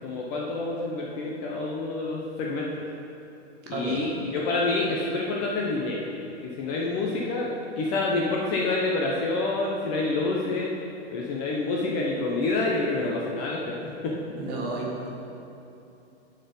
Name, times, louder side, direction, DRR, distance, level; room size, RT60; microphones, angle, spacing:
voice 1, 0.0-2.8 3.7-6.0 6.4-10.7 11.1-13.7 14.0-14.1, left 3 dB, 25° left, -3 dB, 0.7 m, -27 dB
voice 2, 3.7-4.0 14.4-15.1, right 3 dB, 30° right, -3 dB, 1.3 m, -32 dB
7.3 x 4.4 x 6.9 m, 2.8 s
hypercardioid pair, 145°, 33 cm